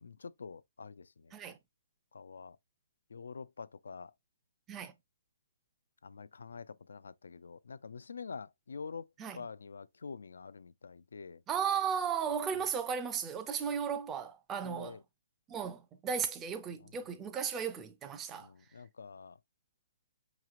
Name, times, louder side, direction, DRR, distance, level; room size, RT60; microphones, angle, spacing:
voice 1, 0.0-1.3 2.1-2.6 3.1-4.1 6.0-9.1 9.3-11.4 14.6-15.0 18.4-19.4, left 5 dB, 90° left, 0.3 m, -46 dB
voice 2, 11.5-15.0 15.5-18.5, right 7 dB, 15° right, 0.4 m, -35 dB
4.8 x 3.0 x 2.4 m
hypercardioid pair, 165°, 0 cm